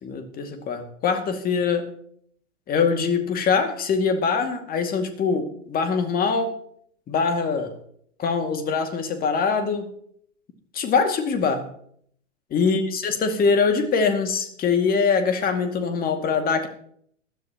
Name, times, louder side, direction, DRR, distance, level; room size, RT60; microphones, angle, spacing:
voice 1, 0.0-1.9 2.7-6.5 7.1-7.7 8.2-9.9 10.7-11.6 12.5-16.7, left 5 dB, 25° left, 6 dB, 2.2 m, -23 dB
20.5 x 13.5 x 3.0 m, 0.63 s
figure-of-eight pair, 105°, 37 cm